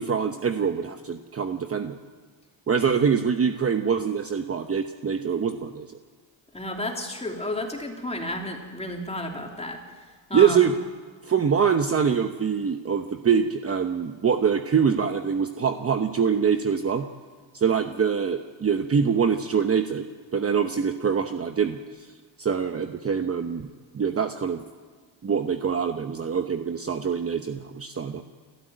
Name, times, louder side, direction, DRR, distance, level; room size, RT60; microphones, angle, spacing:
voice 1, 0.0-2.0 2.7-5.9 10.3-10.8 11.2-17.1 17.5-20.1 20.3-22.1 22.4-23.7 23.9-24.6 25.2-28.2, right 6 dB, 30° right, 7 dB, 0.9 m, -24 dB
voice 2, 6.5-9.8 10.3-10.6, left 1 dB, 15° left, 1 dB, 3.3 m, -32 dB
28.5 x 13.5 x 9.2 m, 1.5 s
cardioid pair, 120°, 48 cm